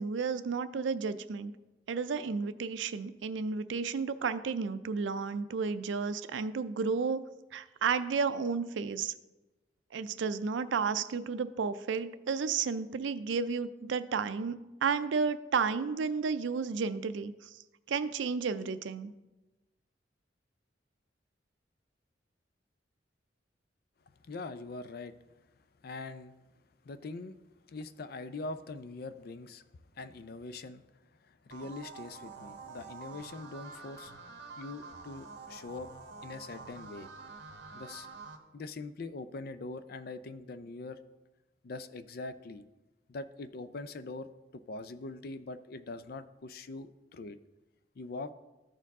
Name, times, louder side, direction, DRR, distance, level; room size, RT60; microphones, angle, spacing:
voice 1, 0.0-1.5 1.9-7.2 7.5-9.1 9.9-17.5 17.9-19.1, right 5 dB, 85° right, 12 dB, 0.4 m, -32 dB
voice 2, 24.2-25.1 25.8-26.4 26.8-27.4 27.7-29.6 30.0-30.8 31.2-34.2 34.6-35.9 36.2-37.1 37.7-38.1 38.5-41.0 41.6-42.6 43.1-47.4 48.0-48.3, left 3 dB, 55° left, 13 dB, 0.4 m, -42 dB
sound 1, 31.5-38.4, right 4 dB, 65° right, 1.0 m, -48 dB
13.5 x 4.6 x 3.6 m, 1.1 s
head